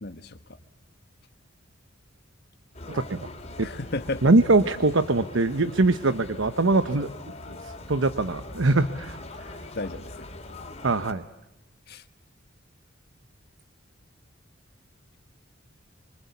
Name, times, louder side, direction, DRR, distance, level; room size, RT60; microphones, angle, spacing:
voice 1, 0.0-0.4 3.6-4.2 9.7-10.3 11.9-12.0, left 2 dB, 55° left, 7 dB, 1.4 m, -33 dB
sound 1, 2.7-11.1, left 2 dB, 35° left, 3.3 m, -41 dB
voice 2, 2.9-3.3 3.6-3.7 4.2-7.1 7.5-9.2 10.8-11.2, right 2 dB, 80° right, 12 dB, 1.0 m, -22 dB
27.5 x 25.0 x 8.4 m, 0.92 s
head